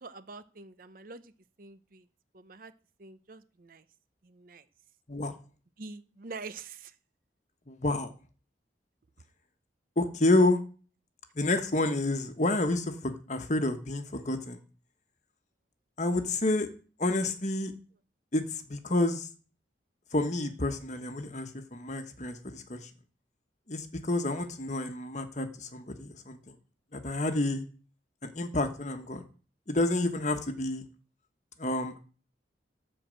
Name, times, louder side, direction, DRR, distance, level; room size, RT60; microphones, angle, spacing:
voice 1, 0.0-1.3 1.6-2.0 2.3-2.7 3.0-3.8 4.2-4.6 5.8-6.9, right 4 dB, 50° right, 12 dB, 0.7 m, -45 dB
voice 2, 7.7-8.1 10.0-10.6 11.4-14.6 16.0-16.7 17.0-17.7 18.3-18.4 18.7-19.3 20.1-22.8 23.7-26.4 26.9-27.6 28.2-29.2 29.7-30.8 31.6-32.0, left 2 dB, 40° left, 8 dB, 1.2 m, -29 dB
13.0 x 4.5 x 7.6 m, 0.39 s
head